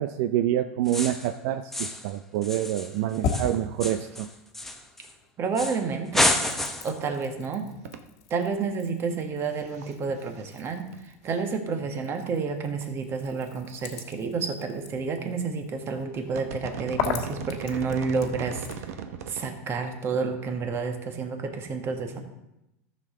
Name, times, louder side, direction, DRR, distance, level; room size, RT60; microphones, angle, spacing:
voice 1, 0.0-4.3, right 12 dB, 60° right, 10 dB, 0.5 m, -27 dB
sound 1, 0.9-1.3 1.7-2.1 2.4-5.1 5.6-5.8 6.1-7.0, left 1 dB, 5° left, 0.9 m, -29 dB
sound 2, 2.6-5.3 5.6-18.9, left 7 dB, 50° left, 1.5 m, -39 dB
sound 3, 3.0-3.1 3.4-3.6 3.8-3.9 4.2-4.3 6.5-6.6 7.8-8.0 9.6-9.9 10.2-11.0 11.3-11.4 12.2-12.3 12.8-12.9 13.1-13.2 13.6-14.0 15.0-15.2 15.7-15.9 16.2-19.5 19.8-19.9, right 7 dB, 80° right, 1.0 m, -38 dB
voice 2, 5.4-6.4 6.8-7.7 8.3-10.9 11.2-18.9 19.3-22.2, right 5 dB, 30° right, 6 dB, 1.5 m, -30 dB
14.0 x 6.6 x 3.8 m, 0.89 s
supercardioid pair, 130°, 8 cm